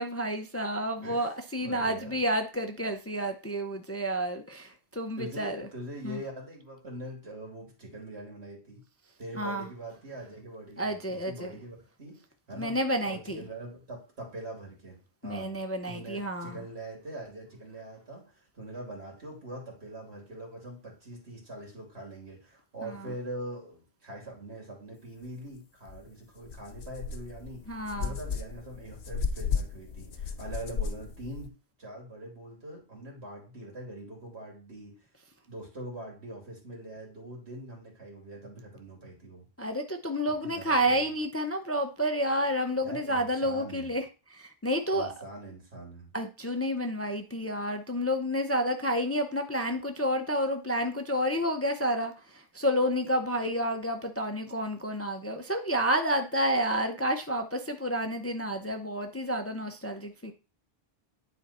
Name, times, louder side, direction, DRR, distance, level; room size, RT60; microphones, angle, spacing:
voice 1, 0.0-5.7 6.0-6.2 9.4-9.7 10.8-11.5 12.5-13.4 15.2-16.6 22.8-23.0 27.7-28.1 39.6-44.0 44.3-45.1 46.1-60.3, equal, 15° left, 5 dB, 0.5 m, -30 dB
voice 2, 1.0-2.2 5.2-8.8 9.2-12.2 12.5-12.8 13.0-15.5 15.8-31.5 31.8-35.1 35.4-39.5 40.4-41.1 42.8-43.9 44.9-46.1, right 1 dB, 85° right, -1 dB, 3.0 m, -43 dB
sound 1, 25.9-26.0 26.4-31.5, left 5 dB, 80° left, 1.2 m, -34 dB
9.8 x 4.4 x 4.2 m, 0.33 s
omnidirectional pair, 1.1 m